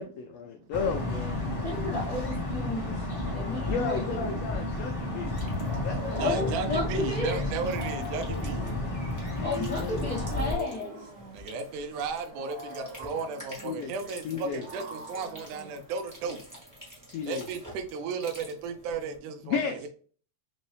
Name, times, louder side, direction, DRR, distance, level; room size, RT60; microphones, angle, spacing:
voice 1, 0.0-1.4 3.7-5.3 5.8-6.5 9.3-10.5 13.6-13.9 14.2-14.7 17.1-17.5 19.4-19.9, left 6 dB, 85° left, 1.4 m, -34 dB
sound 1, 0.7-10.5, left 1 dB, 20° left, 1.0 m, -32 dB
voice 2, 1.6-3.1 3.3-4.2 6.1-7.4 9.4-11.1, left 3 dB, 65° left, 0.8 m, -32 dB
sound 2, 5.4-19.2, equal, 10° right, 0.7 m, -50 dB
Wild animals, 5.5-16.4, left 1 dB, 55° right, 1.2 m, -45 dB
voice 3, 6.2-8.6 11.3-16.4 17.3-19.7, right 5 dB, 80° right, 2.1 m, -34 dB
5.3 x 2.7 x 3.3 m
omnidirectional pair, 3.6 m